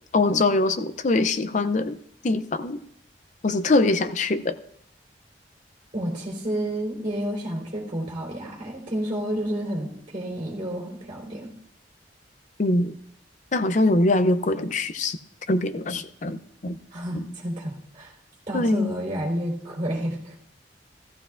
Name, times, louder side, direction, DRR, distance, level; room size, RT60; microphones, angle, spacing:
voice 1, 0.1-2.0 2.2-2.8 3.4-4.6 12.6-12.9 13.5-15.2 15.5-16.8 17.1-17.2 18.5-18.9, left 2 dB, 40° left, 11 dB, 0.5 m, -23 dB
voice 2, 5.9-11.5 16.9-18.1 18.5-20.3, right 1 dB, 30° right, -3 dB, 3.7 m, -30 dB
16.0 x 15.0 x 2.5 m, 0.70 s
head